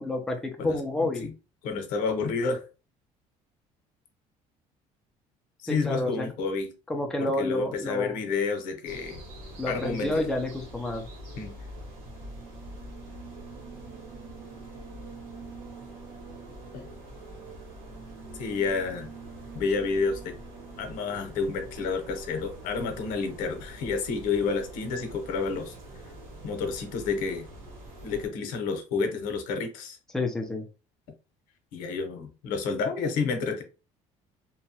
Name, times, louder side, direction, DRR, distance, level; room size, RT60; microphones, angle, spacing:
voice 1, 0.0-1.3 5.7-6.3 6.9-8.2 9.6-11.0 30.1-30.6, left 2 dB, 5° left, 0.5 m, -29 dB
voice 2, 0.6-1.3 1.6-2.6 5.6-6.7 7.2-9.2 9.7-10.2 11.4-11.6 16.7-16.9 18.3-19.1 19.5-20.3 20.8-25.7 26.4-27.5 28.0-30.0 31.7-33.6, left 4 dB, 90° left, 0.8 m, -30 dB
sound 1, 8.8-28.3, right 1 dB, 80° right, 1.2 m, -44 dB
2.8 x 2.2 x 2.8 m
cardioid pair, 150°, 14 cm